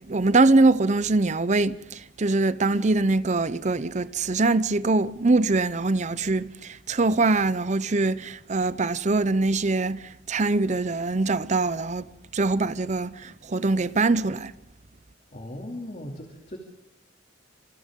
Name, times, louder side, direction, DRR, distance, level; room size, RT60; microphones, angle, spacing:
voice 1, 0.1-12.0 12.3-14.5, right 3 dB, 40° right, 0.7 m, -23 dB
voice 2, 15.3-16.6, left 1 dB, 40° left, 2.7 m, -38 dB
27.5 x 26.5 x 3.8 m
head